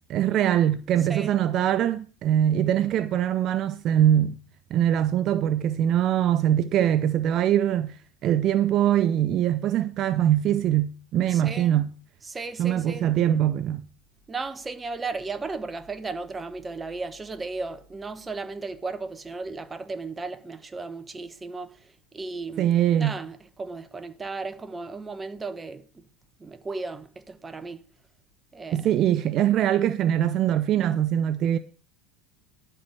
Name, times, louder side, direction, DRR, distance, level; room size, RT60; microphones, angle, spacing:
voice 1, 0.1-4.4 4.7-8.0 8.2-11.9 12.6-13.8 22.6-23.1 28.7-31.6, right 11 dB, 45° right, 0.5 m, -22 dB
voice 2, 1.1-1.4 11.3-11.7 12.2-13.1 14.3-21.7 22.1-22.7 23.0-26.0 26.4-27.8 28.5-28.8, right 3 dB, 15° right, 1.0 m, -35 dB
11.0 x 4.4 x 7.7 m
supercardioid pair, 125°, 0 cm